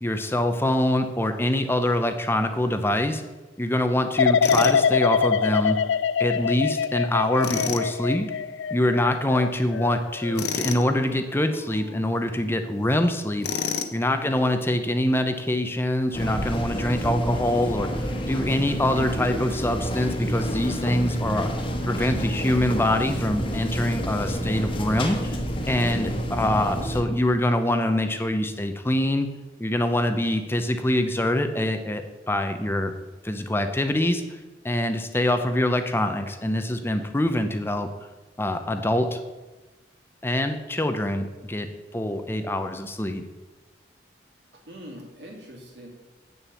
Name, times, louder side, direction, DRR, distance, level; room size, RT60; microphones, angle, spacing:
voice 1, 0.0-3.2 3.6-5.8 6.2-8.3 8.7-13.5 13.9-21.5 21.9-25.4 25.7-29.3 29.6-32.9 33.2-34.2 34.6-37.9 38.4-39.2 40.2-41.7 41.9-43.2, left 1 dB, 15° left, 7 dB, 0.6 m, -24 dB
sound 1, 4.2-11.1 11.5-12.0, left 6 dB, 85° left, 0.3 m, -25 dB
Tools, 4.4-4.8 7.4-7.9 10.4-10.9 13.4-14.0, left 6 dB, 60° left, 0.9 m, -29 dB
voice 2, 14.1-14.5 25.8-26.1 44.5-45.9, equal, 70° right, 0 dB, 2.7 m, -45 dB
sound 2, 16.1-27.0, equal, 30° left, 1.3 m, -29 dB
8.6 x 7.2 x 7.0 m, 1.2 s
head